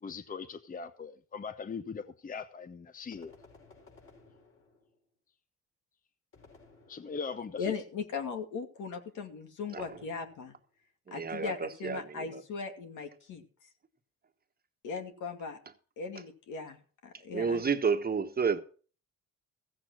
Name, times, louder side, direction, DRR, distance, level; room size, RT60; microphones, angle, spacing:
voice 1, 0.0-3.3 6.9-7.7, left 5 dB, 30° left, 0.8 m, -40 dB
sound 1, 3.1-5.1 6.3-7.5 9.8-10.7, left 3 dB, 45° left, 4.9 m, -59 dB
voice 2, 7.6-10.6 11.1-13.7 14.8-15.6 16.0-17.7, left 5 dB, 80° left, 2.4 m, -38 dB
voice 3, 11.1-12.0 12.3-12.4 17.3-18.6, right 5 dB, 30° right, 1.3 m, -30 dB
15.0 x 7.6 x 6.1 m
cardioid pair, 90°, 30 cm